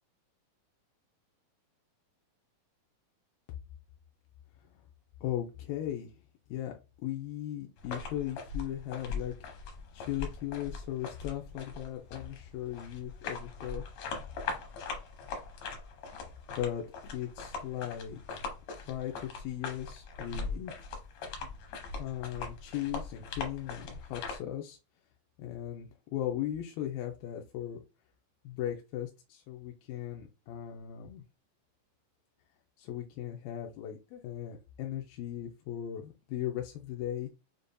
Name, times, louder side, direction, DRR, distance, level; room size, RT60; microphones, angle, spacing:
voice 1, 5.2-6.1 6.5-6.7 7.0-9.4 9.9-13.8 16.5-16.8 17.1-18.5 18.9-20.7 22.0-24.8 25.4-27.8 28.4-31.2 32.8-37.3, left 11 dB, 90° left, 1 dB, 2.4 m, -37 dB
sound 1, 7.8-24.4, left 4 dB, 70° left, 1.7 m, -41 dB
6.8 x 2.5 x 2.2 m, 0.28 s
omnidirectional pair, 4.0 m